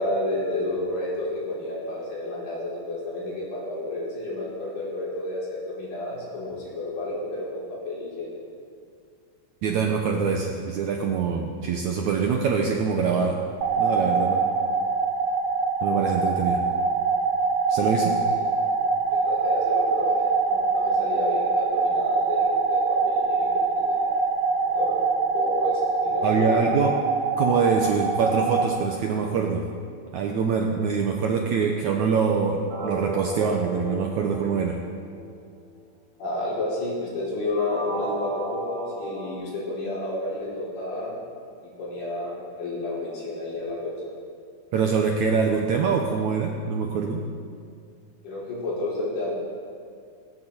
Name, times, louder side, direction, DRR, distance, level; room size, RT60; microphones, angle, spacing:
voice 1, 0.0-8.3 18.2-18.5 19.1-23.5 23.7-24.2 24.6-25.0 25.3-26.7 36.2-41.1 41.8-44.1 48.2-49.3, left 2 dB, 80° left, -8 dB, 7.4 m, -31 dB
voice 2, 9.6-13.4 13.8-14.5 15.8-16.6 17.7-18.2 26.2-26.9 27.4-29.7 30.1-34.8 44.7-47.3, right 5 dB, 75° right, 2 dB, 1.8 m, -24 dB
sound 1, 13.6-28.6, right 4 dB, 90° right, 3.0 m, -24 dB
sound 2, 32.7-35.7 37.4-39.3, right 1 dB, 50° right, 3.3 m, -35 dB
18.5 x 17.0 x 4.4 m, 2.2 s
omnidirectional pair, 4.5 m